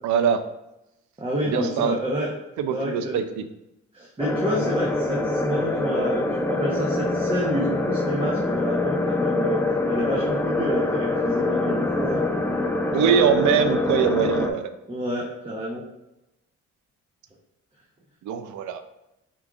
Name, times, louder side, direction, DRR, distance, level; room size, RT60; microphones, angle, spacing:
voice 1, 0.0-0.4 1.4-2.0 2.6-3.5 12.9-14.7 18.2-18.8, right 7 dB, 75° right, 10 dB, 0.5 m, -22 dB
voice 2, 1.2-2.3 2.7-3.2 3.9-9.6 9.9-12.3 14.9-15.8, equal, 20° right, -4 dB, 0.8 m, -29 dB
sound 1, 4.2-14.5, left 2 dB, 10° left, 0.4 m, -24 dB
4.3 x 3.8 x 2.4 m, 0.90 s
cardioid pair, 90°, 30 cm